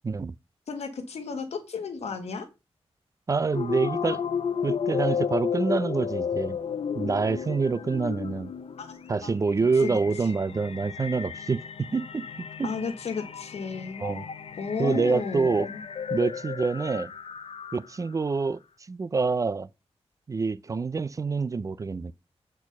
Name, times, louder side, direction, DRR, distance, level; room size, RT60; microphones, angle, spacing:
voice 1, 0.0-0.4 3.3-4.2 4.6-6.6 6.9-8.5 9.1-12.3 12.6-12.7 14.0-14.2 14.8-15.7 16.1-17.1 17.7-19.7 20.3-22.1, right 4 dB, 30° right, 0.4 m, -26 dB
voice 2, 0.7-2.5 8.8-9.0 9.2-9.3 9.8-9.9 12.6-14.1 14.6-15.8, left 5 dB, 90° left, 1.7 m, -33 dB
sound 1, 3.5-18.1, left 7 dB, 65° left, 0.7 m, -33 dB
8.2 x 4.5 x 5.9 m
wide cardioid pair, 155°, 11 cm